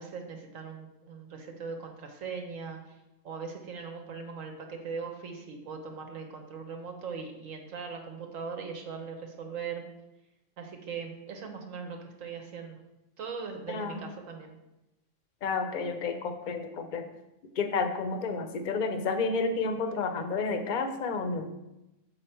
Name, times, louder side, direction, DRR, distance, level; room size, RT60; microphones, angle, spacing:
voice 1, 0.0-3.0 3.2-9.8 10.6-12.8 13.2-14.6, right 5 dB, 85° right, 3 dB, 1.3 m, -40 dB
voice 2, 13.7-14.0 15.4-17.1 17.6-21.5, left 4 dB, 50° left, 7 dB, 0.6 m, -30 dB
6.5 x 4.8 x 4.4 m, 0.94 s
omnidirectional pair, 1.3 m